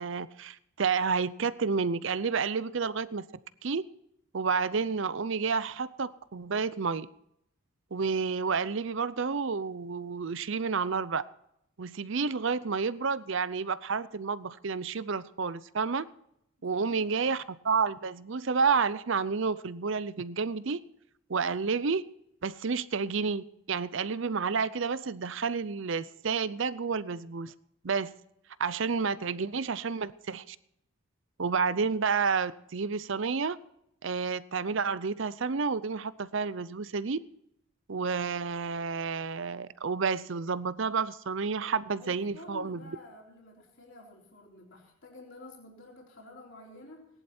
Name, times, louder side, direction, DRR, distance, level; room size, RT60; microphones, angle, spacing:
voice 1, 0.0-3.2 3.6-3.8 4.3-7.1 7.9-11.2 11.8-16.1 16.6-20.8 21.3-22.0 22.4-27.5 27.8-28.1 28.6-30.6 31.4-33.6 34.0-37.2 37.9-42.8, right 5 dB, 60° right, 0.6 m, -30 dB
voice 2, 16.6-17.3 41.9-47.1, left 2 dB, 60° left, 3.9 m, -50 dB
18.0 x 11.0 x 4.4 m
head